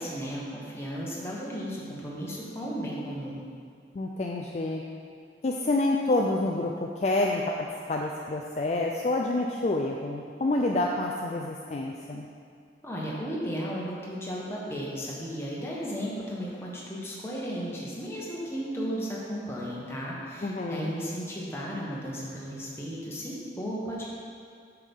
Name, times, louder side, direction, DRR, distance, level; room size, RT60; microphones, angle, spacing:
voice 1, 0.0-3.4 12.8-24.1, equal, 15° left, -5 dB, 1.2 m, -35 dB
voice 2, 3.9-4.8 5.4-12.3 20.4-20.9, left 2 dB, 40° left, 0 dB, 0.4 m, -28 dB
8.3 x 5.9 x 3.6 m, 2.2 s
head